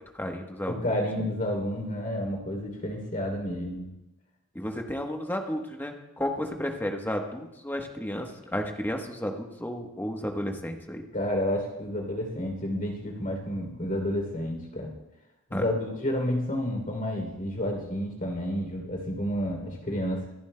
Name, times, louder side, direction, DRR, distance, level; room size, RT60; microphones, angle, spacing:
voice 1, 0.1-0.9 4.5-11.0 15.5-15.6, equal, 10° left, 3 dB, 1.1 m, -32 dB
voice 2, 0.7-4.0 11.1-14.9 15.5-20.3, equal, 40° left, 1 dB, 3.1 m, -30 dB
25.0 x 11.0 x 2.2 m, 0.91 s
head